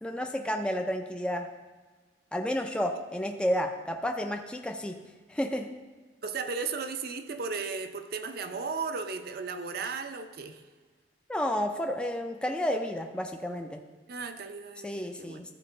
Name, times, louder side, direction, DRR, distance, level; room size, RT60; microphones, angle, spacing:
voice 1, 0.0-1.5 2.3-5.0 5.3-5.7 11.3-13.8 14.8-15.5, equal, 5° left, 3 dB, 0.4 m, -31 dB
voice 2, 6.2-10.6 14.1-15.4, right 4 dB, 55° right, 8 dB, 0.6 m, -35 dB
13.5 x 4.7 x 3.8 m, 1.4 s
head